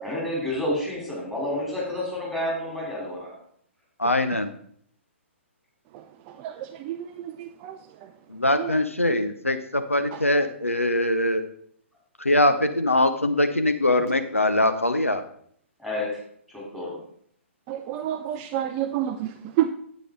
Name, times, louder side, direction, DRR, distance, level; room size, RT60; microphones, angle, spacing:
voice 1, 0.0-3.3 15.8-16.1 16.5-17.0, left 1 dB, 5° left, -4 dB, 3.6 m, -29 dB
voice 2, 4.0-4.5 8.3-11.4 12.2-15.2, left 1 dB, 85° left, 9 dB, 0.8 m, -22 dB
voice 3, 17.7-19.3 19.6-19.7, right 12 dB, 25° right, 7 dB, 0.5 m, -27 dB
9.9 x 8.2 x 3.7 m, 0.63 s
figure-of-eight pair, 125°, 7 cm